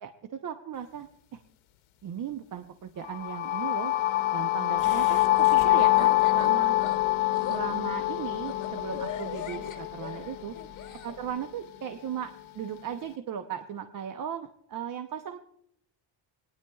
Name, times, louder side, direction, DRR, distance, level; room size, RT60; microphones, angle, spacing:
voice 1, 0.0-1.4 2.0-3.9 4.3-6.8 7.5-10.5 11.0-15.4, right 8 dB, 45° right, 7 dB, 0.7 m, -37 dB
sound 1, 3.0-10.9, left 17 dB, 85° left, 0.8 m, -25 dB
Laughter, 4.8-11.1, left 7 dB, 40° left, 1.4 m, -41 dB
28.0 x 9.9 x 2.3 m, 0.76 s
cardioid pair, 155°, 47 cm